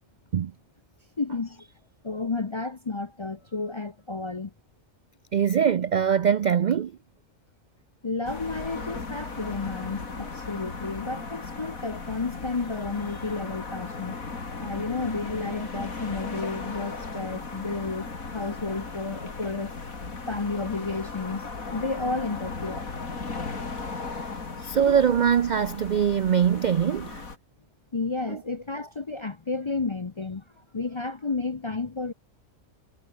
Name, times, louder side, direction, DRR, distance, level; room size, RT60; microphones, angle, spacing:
voice 1, 1.2-1.7 2.0-4.5 8.0-14.1 14.6-18.1 18.3-19.7 20.3-21.4 21.7-22.9 24.5-24.8 27.9-32.1, left 3 dB, 35° left, 0.5 m, -32 dB
voice 2, 5.3-6.9 24.6-27.2 28.3-28.4, right 8 dB, 75° right, 0.4 m, -22 dB
sound 1, 8.2-27.4, left 4 dB, 85° left, 3.4 m, -37 dB
omnidirectional pair, 1.4 m